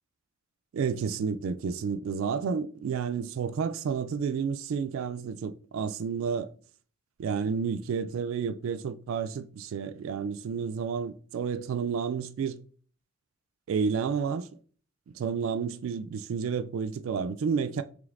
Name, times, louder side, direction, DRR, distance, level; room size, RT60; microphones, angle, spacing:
voice 1, 0.7-6.5 7.2-12.6 13.7-14.5 15.1-17.8, right 6 dB, 70° right, 0.3 m, -30 dB
5.0 x 3.3 x 2.5 m
head